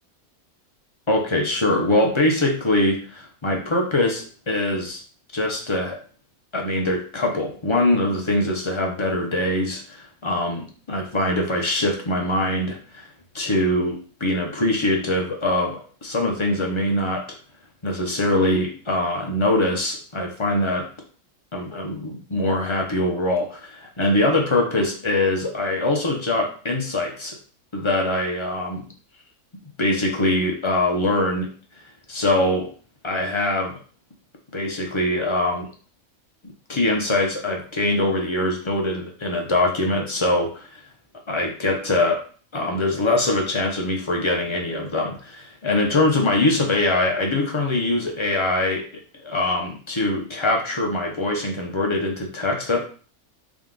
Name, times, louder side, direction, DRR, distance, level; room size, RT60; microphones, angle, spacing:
voice 1, 1.1-5.0 5.3-6.0 6.5-13.0 13.3-17.2 17.8-20.8 21.5-27.3 27.7-28.8 29.8-31.5 32.1-32.7 33.0-33.8 34.5-35.7 36.7-40.8 41.3-42.2 42.5-48.8 49.1-52.8, left 1 dB, 40° left, 1 dB, 0.4 m, -23 dB
3.6 x 2.9 x 3.7 m, 0.41 s
omnidirectional pair, 1.6 m